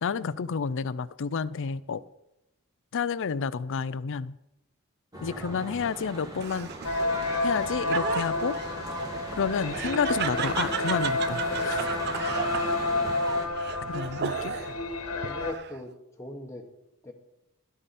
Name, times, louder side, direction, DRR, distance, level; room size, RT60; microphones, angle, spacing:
voice 1, 0.0-2.0 2.9-4.4 5.2-6.7 7.4-8.6 9.4-11.9 12.6-12.7 13.9-14.6, left 6 dB, 60° left, 0.5 m, -30 dB
Church bell / Traffic noise roadway noise, 5.1-13.5, right 1 dB, 15° right, 1.8 m, -39 dB
Laughter, 6.4-14.8 15.2-15.9, right 8 dB, 50° right, 0.5 m, -35 dB
sound 1, 6.8-15.5, left 2 dB, 85° left, 1.5 m, -30 dB
voice 2, 14.3-14.6 15.2-15.9 16.2-16.6 17.0-17.1, left 2 dB, 15° left, 1.1 m, -40 dB
12.5 x 12.5 x 4.2 m
head